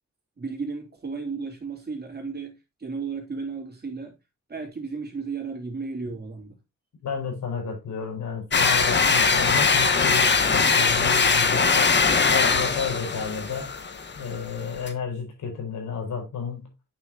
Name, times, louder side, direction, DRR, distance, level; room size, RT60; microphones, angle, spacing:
voice 1, 0.4-4.1 4.5-6.6, right 4 dB, 35° right, 3.3 m, -34 dB
voice 2, 7.0-12.0 12.3-13.8 14.1-16.7, left 6 dB, 80° left, 4.5 m, -32 dB
sound 1, 8.5-14.9, left 4 dB, 40° left, 1.2 m, -21 dB
8.9 x 6.4 x 2.8 m
cardioid pair, 100°, 29 cm